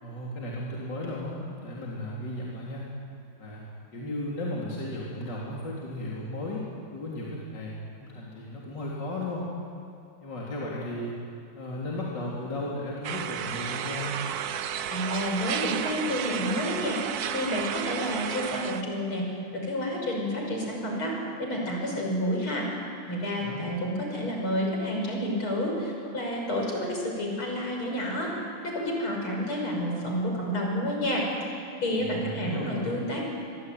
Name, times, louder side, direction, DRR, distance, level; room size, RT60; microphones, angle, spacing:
voice 1, 0.0-2.8 3.4-3.6 3.9-6.6 6.9-9.5 10.2-11.2 11.5-14.2 23.4-23.6 32.0-33.0, left 1 dB, 55° left, -5 dB, 4.1 m, -35 dB
sound 1, 13.0-18.8, right 9 dB, 60° right, 1.1 m, -32 dB
voice 2, 14.9-17.0 17.3-19.3 19.5-21.1 21.4-22.7 23.1-28.3 28.6-31.2 31.8-33.2, equal, 70° left, 0 dB, 7.0 m, -29 dB
28.0 x 22.5 x 9.4 m, 2.5 s
omnidirectional pair, 2.4 m